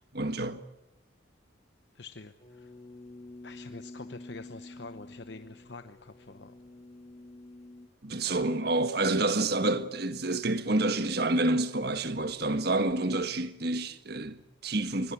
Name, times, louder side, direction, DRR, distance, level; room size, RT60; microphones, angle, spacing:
voice 1, 0.1-0.6 8.0-15.1, right 2 dB, 55° right, 1.5 m, -28 dB
voice 2, 1.9-2.7 3.4-6.5 8.2-8.5, left 3 dB, 60° left, 0.9 m, -46 dB
sound 1, 2.4-7.9, left 2 dB, 35° left, 2.0 m, -48 dB
25.5 x 20.5 x 8.4 m
head